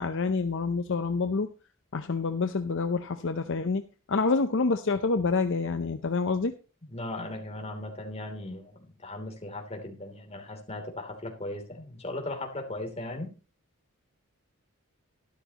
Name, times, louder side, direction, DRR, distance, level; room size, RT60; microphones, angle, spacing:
voice 1, 0.0-1.5 1.9-3.8 4.1-6.5, left 4 dB, 60° left, 8 dB, 0.7 m, -27 dB
voice 2, 6.9-13.3, left 1 dB, 30° left, 3 dB, 3.0 m, -37 dB
12.5 x 12.5 x 3.0 m, 0.34 s
head